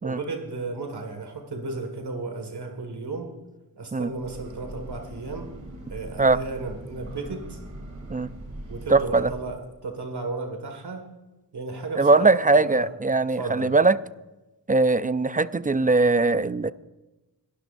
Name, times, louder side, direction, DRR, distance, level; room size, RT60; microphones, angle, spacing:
voice 1, 0.0-3.3 3.8-5.5 5.9-7.6 8.7-11.0 11.5-12.9 13.3-13.7, right 3 dB, 70° right, 4 dB, 1.9 m, -34 dB
Breathing / Train, 4.1-9.7, right 1 dB, 45° right, 3.1 m, -41 dB
voice 2, 8.9-9.3 12.0-14.0 14.7-16.7, right 3 dB, 20° right, 14 dB, 0.4 m, -20 dB
22.5 x 12.0 x 2.6 m, 1.0 s
wide cardioid pair, 90°, 41 cm